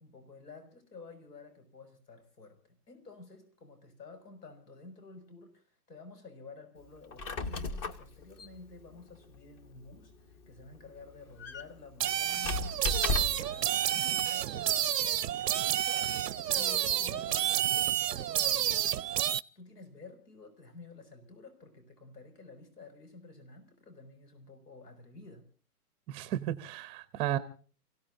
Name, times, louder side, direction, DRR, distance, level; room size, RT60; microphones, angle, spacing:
voice 1, 0.0-15.9 16.2-25.4, left 3 dB, 85° left, 6.1 m, -52 dB
Squeak, 7.0-13.6, left 3 dB, 25° left, 1.0 m, -37 dB
sound 1, 12.0-19.4, right 11 dB, 90° right, 0.7 m, -30 dB
voice 2, 26.1-27.4, right 12 dB, 10° right, 0.7 m, -33 dB
29.5 x 16.5 x 2.6 m
hypercardioid pair, 150°, 47 cm